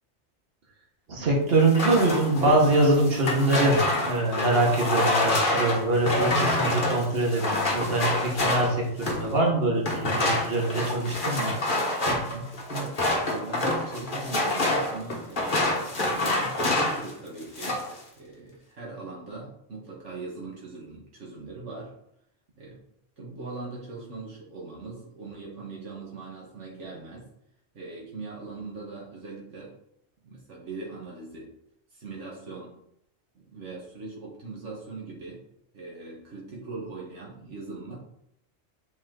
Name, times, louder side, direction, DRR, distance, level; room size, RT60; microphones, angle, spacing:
voice 1, 1.1-11.5 12.1-12.5, right 2 dB, 55° right, -2 dB, 1.8 m, -24 dB
sound 1, 1.6-9.3 9.8-17.1 17.4-18.0, left 1 dB, 45° left, 1.4 m, -27 dB
voice 2, 12.7-17.8 18.2-21.9 22.6-22.8 23.2-27.3 27.7-29.8 30.2-31.5 31.9-32.8 33.3-35.4 35.7-38.0, right 3 dB, 75° right, -4 dB, 1.7 m, -40 dB
7.6 x 4.2 x 3.8 m, 0.75 s
omnidirectional pair, 1.2 m